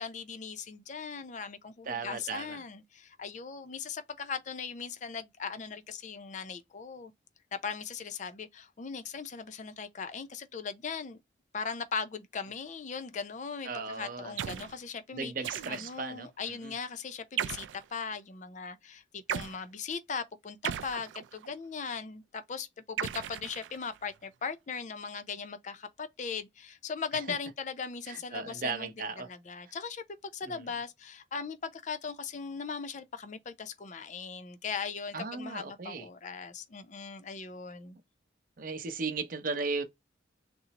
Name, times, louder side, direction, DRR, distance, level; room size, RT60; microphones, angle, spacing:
voice 1, 0.0-7.1 7.5-11.2 11.5-15.3 15.7-38.0, left 5 dB, 40° left, 0.4 m, -39 dB
voice 2, 1.9-2.6 13.6-14.3 15.1-16.7 28.1-29.3 30.4-30.6 35.1-36.1 38.6-39.8, right 4 dB, 50° right, 0.6 m, -36 dB
sound 1, 14.4-14.8 15.4-16.1 17.4-17.9 19.3-19.6 20.6-21.5 23.0-24.0, right 10 dB, 90° right, 0.3 m, -36 dB
3.8 x 2.0 x 2.8 m
head